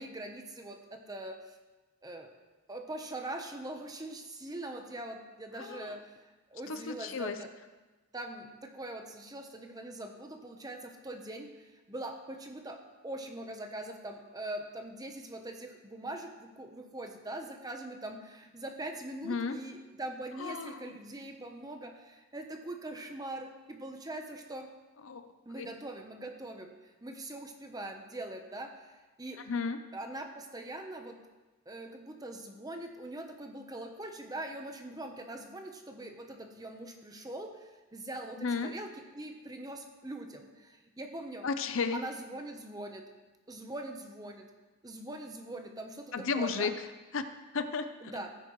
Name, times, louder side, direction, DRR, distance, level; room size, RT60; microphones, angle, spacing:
voice 1, 0.0-1.6 2.0-2.3 2.7-7.5 8.1-12.8 13.0-24.7 25.5-29.4 29.9-31.2 31.7-41.5 41.9-43.0 43.5-44.5 44.8-46.7 48.0-48.3, right 1 dB, 15° right, 4 dB, 0.8 m, -42 dB
voice 2, 5.6-5.9 6.7-7.4 19.2-19.6 20.4-20.9 25.0-25.3 25.5-25.7 29.5-29.8 38.4-38.7 41.4-42.0 46.1-46.7 47.1-47.2 47.5-48.1, left 4 dB, 60° left, 9 dB, 0.6 m, -33 dB
14.5 x 9.4 x 3.1 m, 1.2 s
head